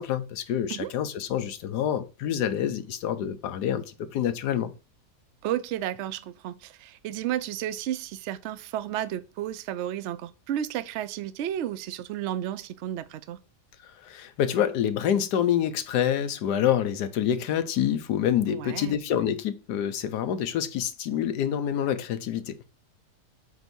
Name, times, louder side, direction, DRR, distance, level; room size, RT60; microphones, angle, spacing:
voice 1, 0.0-3.8 4.1-4.7 14.0-22.6, left 9 dB, 80° left, 1.3 m, -27 dB
voice 2, 5.4-13.4 18.5-19.0, right 11 dB, 90° right, 0.6 m, -32 dB
8.0 x 2.7 x 6.0 m
omnidirectional pair, 1.8 m